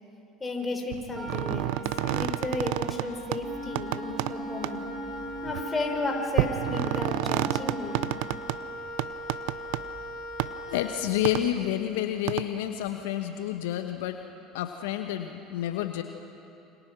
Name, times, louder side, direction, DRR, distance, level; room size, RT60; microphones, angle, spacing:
voice 1, 0.4-4.9 5.4-8.1, left 2 dB, 20° left, 3 dB, 5.1 m, -33 dB
sound 1, 0.9-3.1 3.3-3.4 3.8-4.3 4.6-4.7 5.5-5.6 6.4-8.6 9.0-9.8 10.4-10.5 11.3-11.4 12.3-12.4, right 18 dB, 65° right, 0.7 m, -29 dB
Wind instrument woodwind instrument, 1.1-11.6, equal, 15° right, 7.4 m, -40 dB
Wind instrument woodwind instrument 2, 3.4-8.2, right 1 dB, 40° right, 5.0 m, -39 dB
voice 2, 10.7-14.2 14.5-16.0, left 12 dB, 70° left, 7 dB, 1.2 m, -29 dB
28.5 x 26.5 x 6.2 m, 2.8 s
hypercardioid pair, 70°, 0 cm